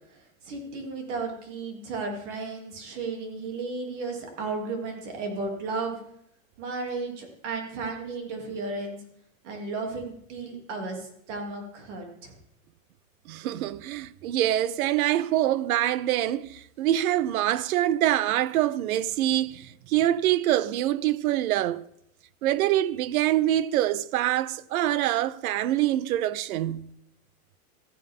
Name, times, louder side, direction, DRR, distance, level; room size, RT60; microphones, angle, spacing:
voice 1, 0.1-6.0 6.6-9.0 9.4-12.3, right 3 dB, 55° right, 2.8 m, -34 dB
voice 2, 13.3-21.8 22.4-26.9, right 13 dB, 80° right, 0.7 m, -25 dB
14.5 x 9.0 x 3.7 m
supercardioid pair, 170°, 42 cm